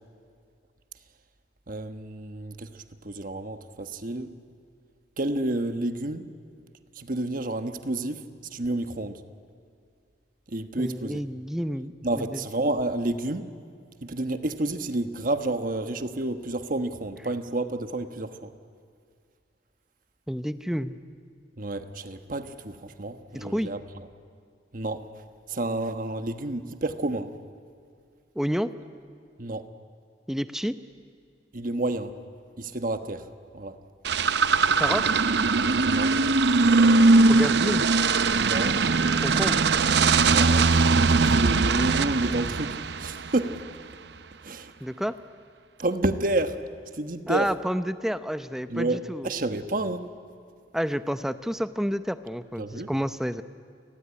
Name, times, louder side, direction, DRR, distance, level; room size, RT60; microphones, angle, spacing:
voice 1, 1.7-4.4 5.2-6.3 6.9-8.2 8.5-9.2 10.5-11.2 12.0-13.5 14.0-18.5 21.6-23.8 24.7-25.0 25.5-27.3 29.4-29.6 31.5-32.2 32.6-33.3 33.5-33.8 35.8-36.1 38.3-38.8 40.2-40.8 41.1-43.6 44.4-44.7 45.8-46.6 46.9-47.5 48.7-50.1 52.6-52.9, right 2 dB, 50° right, 9 dB, 1.3 m, -30 dB
voice 2, 10.8-12.5 20.3-21.0 23.3-23.7 28.4-28.7 30.3-30.8 34.8-35.0 37.3-37.9 39.2-39.6 44.8-45.2 47.3-49.3 50.7-53.4, equal, 5° right, 11 dB, 0.7 m, -29 dB
sound 1, 34.0-43.6, right 3 dB, 70° right, 0.7 m, -21 dB
29.0 x 19.0 x 9.9 m, 2.2 s
head